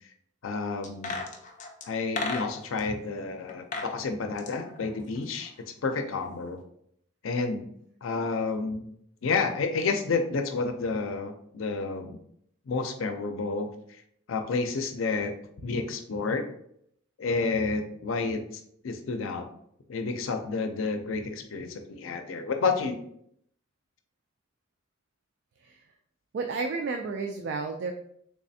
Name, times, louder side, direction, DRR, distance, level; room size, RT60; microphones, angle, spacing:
voice 1, 0.4-1.2 1.9-5.5 5.8-6.6 7.2-7.7 8.0-8.8 9.2-12.2 12.7-13.7 14.3-16.4 17.2-18.4 18.8-19.4 19.9-23.0, left 4 dB, 85° left, 6 dB, 0.5 m, -30 dB
sound 1, 0.8-2.8 3.5-3.9 4.2-5.6 5.9-6.0, left 3 dB, 40° left, 0.5 m, -35 dB
voice 2, 26.3-27.9, right 4 dB, 60° right, 4 dB, 0.3 m, -31 dB
3.5 x 3.2 x 2.6 m, 0.70 s
head